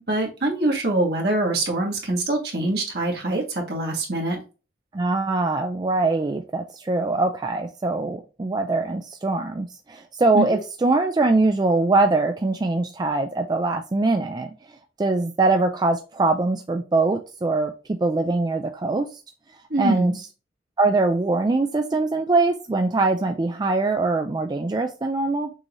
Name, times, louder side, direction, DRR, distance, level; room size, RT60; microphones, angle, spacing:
voice 1, 0.1-4.4 10.3-10.6 19.7-20.2, right 2 dB, 60° right, 1.6 m, -24 dB
voice 2, 4.9-14.5 15.0-19.2 19.8-20.1 20.8-25.5, right 3 dB, 25° right, 0.3 m, -22 dB
6.2 x 2.7 x 3.0 m
head